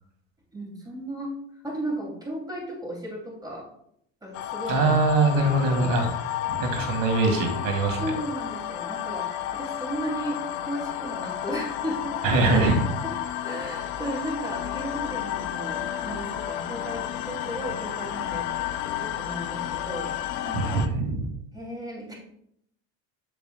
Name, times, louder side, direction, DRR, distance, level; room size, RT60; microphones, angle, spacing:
voice 1, 0.5-1.3 1.6-3.6 4.2-4.9 5.4-5.9 8.0-9.3 9.5-12.7 13.0-13.1 13.4-20.1 20.4-20.8 21.5-22.1, right 1 dB, 10° right, -3 dB, 2.9 m, -35 dB
sound 1, 4.3-20.9, left 11 dB, 75° left, 0.7 m, -32 dB
voice 2, 4.7-6.1 6.4-8.0 12.2-12.8 20.5-21.3, right 2 dB, 55° right, 3 dB, 2.0 m, -22 dB
7.6 x 6.9 x 2.3 m, 0.73 s
supercardioid pair, 95°, 41 cm